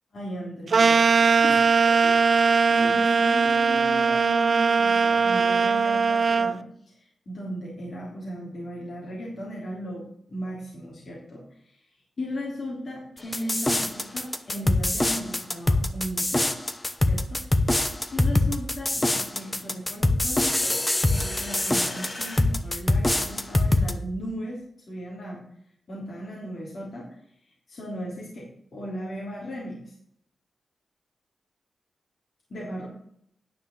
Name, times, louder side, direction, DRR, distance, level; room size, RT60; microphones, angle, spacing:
voice 1, 0.1-1.0 1.3-11.9 12.2-16.5 17.0-24.6 24.9-25.4 25.9-29.9 32.5-32.9, equal, 55° left, -4 dB, 3.1 m, -36 dB
sound 1, 0.7-6.5, right 5 dB, 50° right, 0.6 m, -20 dB
sound 2, 13.3-23.9, left 2 dB, 15° left, 1.0 m, -24 dB
sound 3, 20.9-22.4, left 2 dB, 35° left, 2.8 m, -40 dB
9.8 x 5.7 x 7.7 m, 0.67 s
wide cardioid pair, 100°, 0 cm